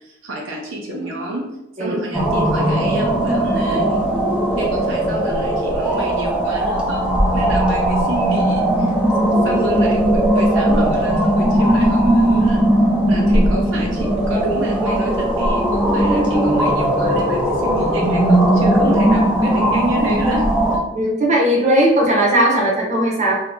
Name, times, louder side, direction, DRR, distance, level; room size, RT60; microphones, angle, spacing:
voice 1, 0.0-1.4 1.8-4.0 4.6-8.9 9.4-12.6 13.1-20.8, right 1 dB, 80° right, -2 dB, 0.7 m, -29 dB
sound 1, 2.1-20.8, right 1 dB, 5° right, 0.5 m, -18 dB
voice 2, 20.9-23.4, right 1 dB, 40° right, -3 dB, 0.9 m, -17 dB
2.8 x 2.6 x 3.6 m, 0.89 s
head